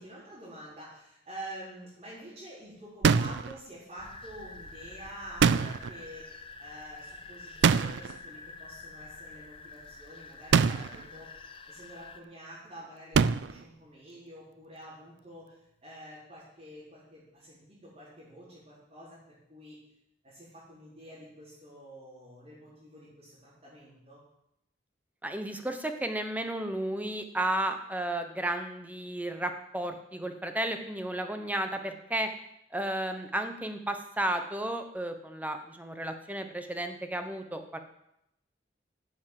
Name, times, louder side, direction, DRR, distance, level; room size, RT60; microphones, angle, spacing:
voice 1, 0.0-11.4 11.7-19.8 20.2-24.2, right 1 dB, 35° right, -9 dB, 4.4 m, -48 dB
sound 1, 3.0-3.5 5.4-6.0 7.6-8.2 10.5-11.0 13.1-13.6, right 6 dB, 70° right, 0.4 m, -24 dB
sound 2, 4.0-12.2, left 3 dB, 30° left, 0.8 m, -47 dB
voice 2, 25.2-32.3 32.7-37.8, right 1 dB, 10° right, 6 dB, 1.0 m, -33 dB
11.0 x 7.3 x 7.6 m, 0.80 s
head